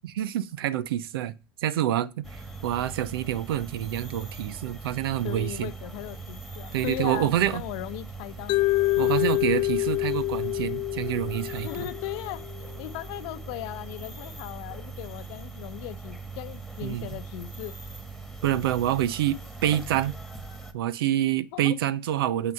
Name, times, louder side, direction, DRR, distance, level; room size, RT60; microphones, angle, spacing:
voice 1, 0.2-1.3 1.6-5.7 6.7-7.6 9.0-11.9 16.8-17.1 18.4-20.2 20.7-22.5, right 12 dB, 70° right, 0.7 m, -27 dB
sound 1, 2.2-20.7, right 4 dB, ahead, 1.6 m, -41 dB
voice 2, 5.2-8.5 11.6-12.4 12.8-17.7 21.5-21.8, left 16 dB, 60° left, 0.8 m, -37 dB
Mallet percussion, 8.5-12.6, left 20 dB, 40° left, 0.4 m, -27 dB
7.8 x 5.9 x 5.5 m
hypercardioid pair, 90°, 13 cm